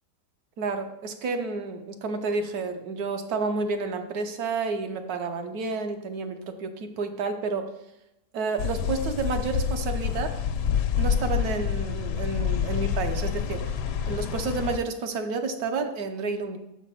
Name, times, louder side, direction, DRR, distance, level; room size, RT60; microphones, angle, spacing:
voice 1, 0.6-7.7 8.3-10.4 11.0-13.8 14.1-16.6, right 4 dB, 70° right, 6 dB, 1.2 m, -30 dB
sound 1, 8.6-14.8, left 8 dB, 90° left, 1.2 m, -27 dB
6.2 x 5.0 x 5.5 m, 0.89 s
omnidirectional pair, 1.7 m